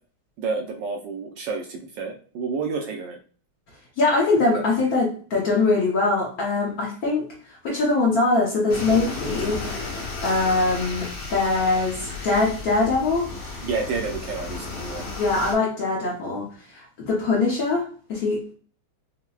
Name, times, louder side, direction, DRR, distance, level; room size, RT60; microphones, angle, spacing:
voice 1, 0.4-3.2 13.6-15.0, right 4 dB, 75° right, 1 dB, 1.1 m, -30 dB
voice 2, 4.0-7.3 7.6-9.6 10.2-13.3 15.2-17.8 18.1-18.5, left 3 dB, 60° left, -3 dB, 1.1 m, -22 dB
sound 1, 8.7-15.5, left 3 dB, 90° left, 2.1 m, -33 dB
5.5 x 2.1 x 2.3 m, 0.43 s
omnidirectional pair, 2.3 m